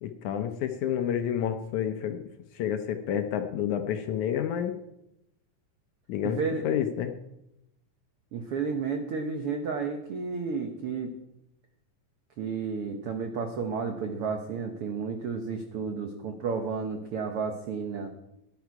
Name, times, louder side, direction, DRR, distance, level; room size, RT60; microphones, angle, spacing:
voice 1, 0.0-2.2 2.5-4.7 6.1-6.4 6.6-7.1, left 9 dB, 75° left, 7 dB, 1.9 m, -29 dB
voice 2, 6.2-6.7 8.3-11.1 12.4-18.1, right 5 dB, 75° right, 5 dB, 1.3 m, -32 dB
16.0 x 11.0 x 4.7 m, 0.86 s
omnidirectional pair, 4.0 m